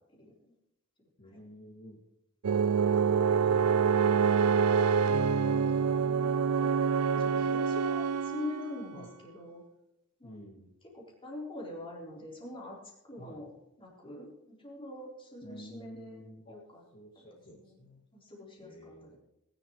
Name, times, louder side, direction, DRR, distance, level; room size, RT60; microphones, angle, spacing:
voice 1, 0.2-0.5 1.3-1.4 5.9-6.8 7.1-9.6 10.2-10.4 10.9-12.8 13.0-13.5 13.8-16.2 16.5-16.8 17.6-17.8 18.1-19.2, left 2 dB, 25° left, -4 dB, 4.2 m, -44 dB
voice 2, 1.2-2.0 2.9-4.5 5.1-5.7 8.9-9.1 10.2-10.8 13.2-13.4 15.4-16.6 16.9-18.0 18.6-19.2, equal, 40° left, -6 dB, 2.3 m, -50 dB
sound 1, 2.4-8.9, right 6 dB, 85° right, 0.5 m, -26 dB
21.0 x 11.0 x 3.3 m, 0.85 s
head